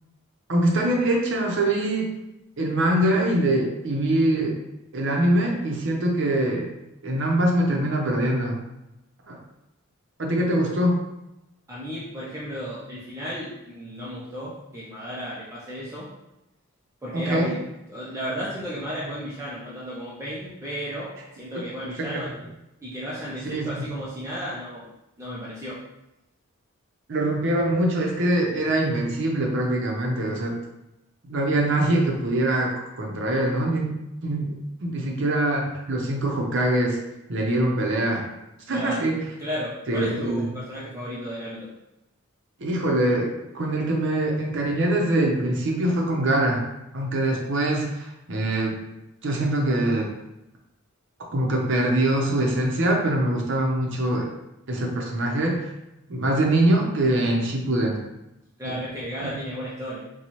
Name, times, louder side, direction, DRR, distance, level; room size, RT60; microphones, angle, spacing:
voice 1, 0.5-2.1 2.6-4.6 4.9-6.7 7.0-8.6 9.3-9.4 10.2-11.0 17.1-17.5 22.0-22.3 23.4-23.9 27.1-30.6 31.3-33.9 34.2-37.0 37.3-38.2 38.7-39.2 39.9-40.4 42.6-46.6 46.9-48.7 49.2-50.1 51.3-54.3 54.7-55.7 56.1-58.0 58.6-58.7 59.2-59.3, right 1 dB, 60° right, 0 dB, 0.7 m, -23 dB
voice 2, 11.7-16.1 17.0-17.6 17.9-21.1 21.4-22.3 22.8-24.9 25.2-25.8 38.7-39.0 39.4-41.7 58.6-60.1, equal, 15° right, -7 dB, 0.5 m, -34 dB
4.1 x 2.3 x 3.0 m, 0.91 s
head